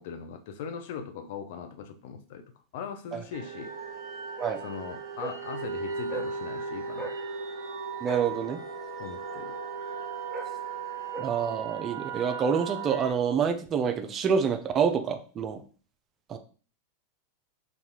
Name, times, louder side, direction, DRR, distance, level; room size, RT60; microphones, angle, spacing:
voice 1, 0.0-2.4 2.7-3.7 4.6-7.1 9.0-9.5, left 6 dB, 65° left, 7 dB, 0.5 m, -40 dB
sound 1, 3.3-11.2, right 2 dB, 5° right, 1.0 m, -43 dB
sound 2, 3.3-13.1, right 5 dB, 85° right, 0.5 m, -37 dB
voice 2, 8.0-8.6 11.2-15.6 16.3-16.4, right 7 dB, 30° right, 8 dB, 0.4 m, -27 dB
3.9 x 2.4 x 2.9 m, 0.40 s
hypercardioid pair, 100°, 0 cm